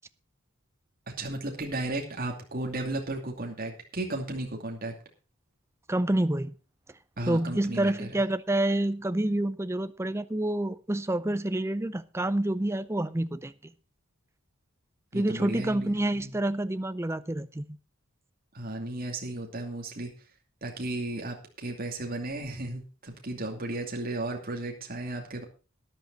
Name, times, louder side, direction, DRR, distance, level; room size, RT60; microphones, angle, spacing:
voice 1, 1.1-4.9 7.2-8.2 15.1-16.3 18.5-20.1 20.6-25.4, right 2 dB, 40° right, 2.6 m, -34 dB
voice 2, 5.9-6.5 7.3-13.7 15.1-17.6, right 1 dB, 10° right, 0.5 m, -28 dB
13.0 x 10.5 x 4.0 m
head